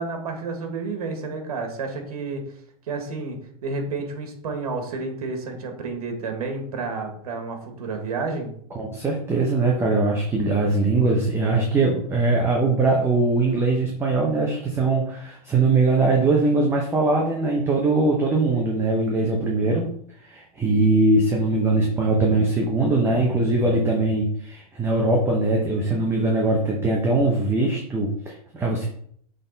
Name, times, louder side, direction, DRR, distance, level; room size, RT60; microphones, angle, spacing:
voice 1, 0.0-2.4 2.9-8.5, right 3 dB, 80° right, 5 dB, 1.6 m, -30 dB
voice 2, 8.8-19.9 20.2-28.9, right 2 dB, 15° right, 0 dB, 0.8 m, -21 dB
6.6 x 3.7 x 3.9 m, 0.64 s
supercardioid pair, 140°, 19 cm